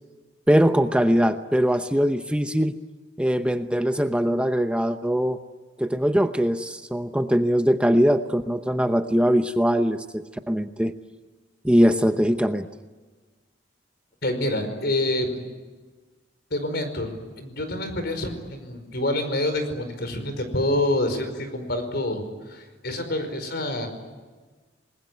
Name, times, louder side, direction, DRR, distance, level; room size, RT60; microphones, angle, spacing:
voice 1, 0.5-2.8 3.2-5.4 5.8-10.9 11.6-12.7, equal, 5° right, 8 dB, 0.8 m, -21 dB
voice 2, 14.2-15.5 16.5-17.1 17.4-22.2 22.5-23.9, left 1 dB, 60° left, 8 dB, 5.1 m, -27 dB
28.0 x 21.0 x 9.5 m, 1.3 s
head